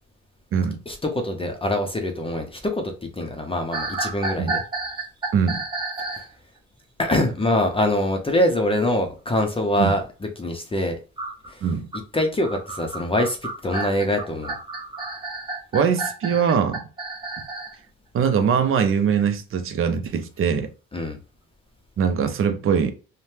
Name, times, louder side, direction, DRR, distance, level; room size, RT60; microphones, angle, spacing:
voice 1, 0.9-4.6 6.1-6.2 7.0-11.0 11.5-11.6 12.1-13.4 13.6-14.5 20.9-21.2, left 1 dB, 20° left, 0.5 m, -24 dB
sound 1, 3.7-6.3 11.2-17.8, right 3 dB, 15° right, 1.0 m, -31 dB
voice 2, 15.7-16.8 18.1-20.7 22.0-22.9, right 7 dB, 45° right, 0.5 m, -22 dB
2.7 x 2.1 x 3.2 m
cardioid pair, 90°, 30 cm